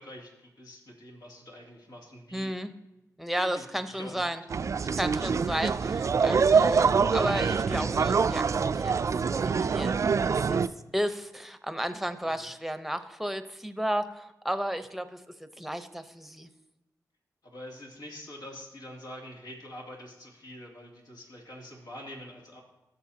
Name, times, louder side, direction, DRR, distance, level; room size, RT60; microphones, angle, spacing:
voice 1, 0.0-2.5 3.4-4.3 12.2-12.5 17.4-22.6, left 1 dB, 80° left, -2 dB, 2.7 m, -45 dB
voice 2, 2.3-2.7 3.2-4.4 4.9-10.0 10.2-10.6 10.9-15.2 15.6-16.5, equal, ahead, 10 dB, 0.8 m, -33 dB
sound 1, 4.5-10.7, right 5 dB, 50° right, 0.4 m, -25 dB
16.5 x 6.9 x 2.8 m, 0.98 s
cardioid pair, 60°, 6 cm